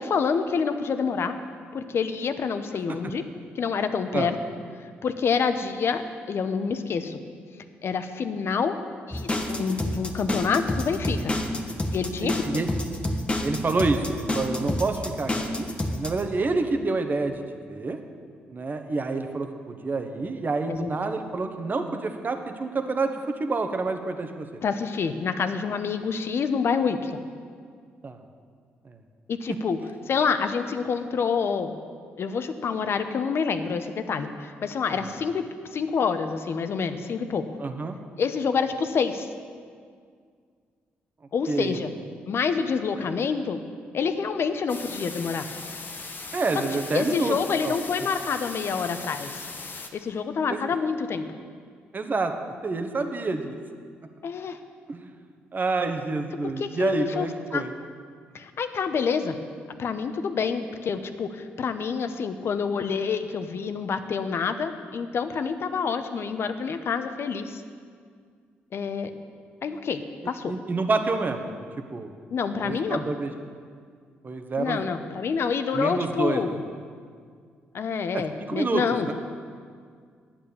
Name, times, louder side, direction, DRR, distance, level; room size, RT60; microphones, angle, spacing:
voice 1, 0.0-1.4 1.7-3.2 3.5-4.4 5.0-7.2 7.8-8.8 9.1-11.3 11.9-12.4 20.7-20.9 24.6-27.2 29.3-29.8 30.1-31.8 32.2-37.5 38.2-39.3 41.3-41.9 42.3-43.6 43.9-45.5 46.9-49.4 49.9-51.3 54.2-54.6 56.4-57.6 58.3-59.4 59.8-67.6 68.7-69.1 69.6-70.5 72.3-73.1 74.6-76.6 77.7-79.1, left 5 dB, 60° left, 9 dB, 0.9 m, -27 dB
sound 1, 9.1-16.2, left 1 dB, 25° left, 1.4 m, -28 dB
voice 2, 12.2-12.7 13.4-17.4 17.7-18.0 18.5-24.6 28.0-28.2 28.8-29.0 35.0-35.1 37.6-38.0 41.5-41.8 43.0-43.1 46.3-47.4 47.6-47.7 50.5-50.6 51.9-52.3 52.6-53.6 54.9-55.1 55.5-57.7 70.5-71.5 71.9-72.1 72.6-73.3 74.2-74.8 75.7-76.6 78.1-79.1, right 3 dB, 40° right, 6 dB, 1.3 m, -28 dB
sound 2, 44.7-49.9, left 3 dB, 45° left, 1.2 m, -38 dB
10.5 x 8.8 x 7.1 m, 2.1 s
supercardioid pair, 55°, 5 cm